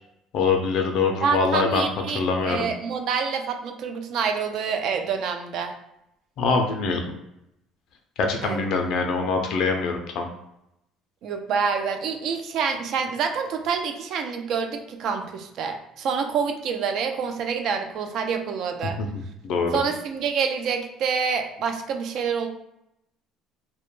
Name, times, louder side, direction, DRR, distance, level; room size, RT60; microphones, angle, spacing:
voice 1, 0.3-2.7 6.4-7.1 8.2-10.3 18.8-19.1 19.4-19.7, left 4 dB, 60° left, 3 dB, 0.3 m, -24 dB
voice 2, 1.2-5.7 8.4-8.6 11.2-19.0 19.7-22.5, right 6 dB, 55° right, 6 dB, 0.3 m, -27 dB
2.1 x 2.1 x 3.0 m, 0.83 s
cardioid pair, 140°, 0 cm